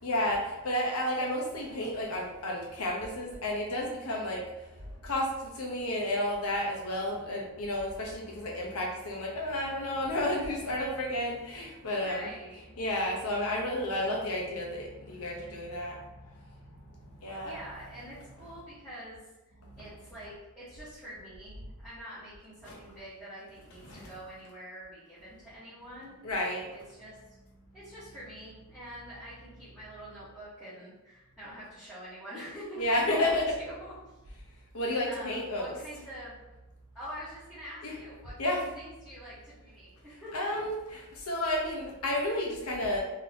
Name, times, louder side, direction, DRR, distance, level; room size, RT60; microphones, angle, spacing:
voice 1, 0.0-12.3 12.8-16.4 16.7-17.6 19.6-19.8 22.6-22.8 23.8-24.1 26.2-26.7 32.8-33.4 34.7-35.8 37.8-37.9 38.4-38.6 40.3-43.0, left 1 dB, 80° left, -1 dB, 0.9 m, -32 dB
voice 2, 7.0-7.4 11.9-12.6 17.4-19.2 19.8-26.2 26.7-27.2 27.7-33.3 33.6-34.2 35.1-36.4 36.9-40.6, equal, ahead, -15 dB, 1.2 m, -45 dB
3.8 x 2.9 x 2.8 m, 1.0 s
head